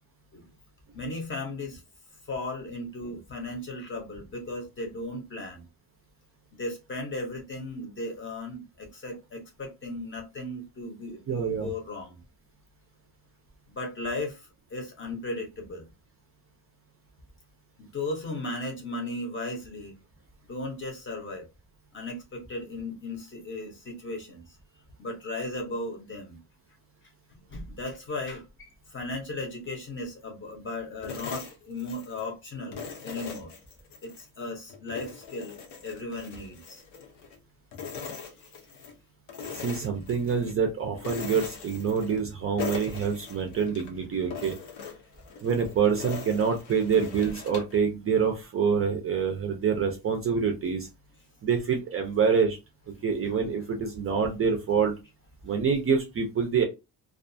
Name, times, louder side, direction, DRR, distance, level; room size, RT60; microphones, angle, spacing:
voice 1, 0.9-1.8 2.3-5.6 6.6-12.2 13.7-15.9 17.8-20.0 20.5-21.5 21.9-24.5 25.0-26.4 27.3-32.8 33.0-33.5 34.0-36.8 38.4-38.5 46.9-47.0, left 2 dB, 30° left, 0.7 m, -36 dB
voice 2, 11.3-11.7 39.5-44.6 45.4-50.9 51.4-52.6 53.0-54.9 55.4-56.6, right 6 dB, 35° right, 0.4 m, -26 dB
sound 1, 31.0-32.3 32.7-34.3 34.7-37.4 37.7-39.0 39.3-40.5 41.0-42.3 42.6-43.9 44.3-47.8, left 5 dB, 80° left, 0.8 m, -40 dB
2.4 x 2.3 x 2.5 m
cardioid pair, 170°, 40 cm